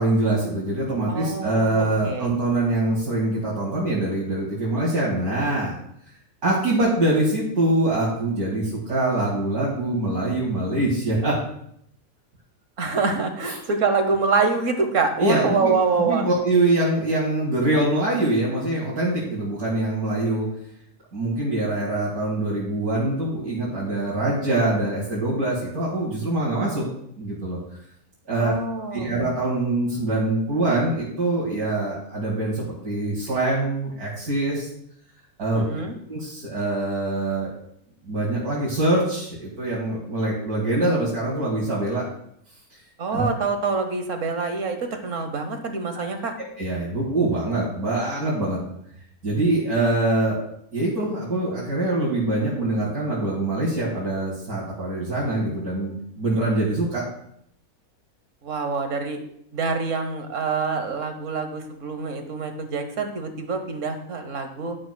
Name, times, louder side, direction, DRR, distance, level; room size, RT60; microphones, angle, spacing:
voice 1, 0.0-5.7 6.4-11.4 13.4-13.5 15.2-15.7 16.0-20.5 21.1-26.8 27.2-27.6 28.3-28.5 28.9-34.7 35.4-35.7 36.1-37.5 38.1-42.1 43.1-43.3 45.9-46.0 46.6-48.6 49.2-50.4 50.7-57.0, right 2 dB, 80° right, -7 dB, 2.7 m, -24 dB
voice 2, 1.1-2.3 12.8-16.2 28.4-29.1 35.5-35.9 43.0-46.3 58.4-59.2 59.5-64.8, right 4 dB, 60° right, 7 dB, 1.3 m, -25 dB
11.0 x 10.5 x 2.2 m, 0.71 s
omnidirectional pair, 1.6 m